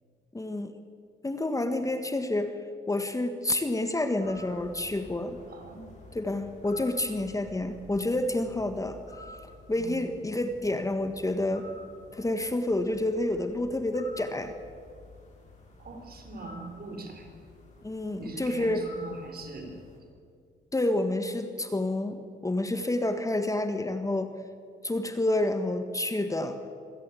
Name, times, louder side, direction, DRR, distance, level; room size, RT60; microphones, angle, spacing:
voice 1, 0.3-0.7 1.2-2.6 2.9-5.4 6.1-9.0 9.7-11.7 12.1-14.5 17.8-18.8 20.7-24.3 24.8-26.6, left 1 dB, 15° left, 8 dB, 1.6 m, -29 dB
sound 1, 4.2-20.0, left 2 dB, 40° left, 6.8 m, -51 dB
voice 2, 5.5-5.8 9.8-10.0 15.8-17.3 18.2-19.8, right 3 dB, 50° right, 5 dB, 4.7 m, -42 dB
26.0 x 16.0 x 8.5 m, 2.2 s
cardioid pair, 90°, 20 cm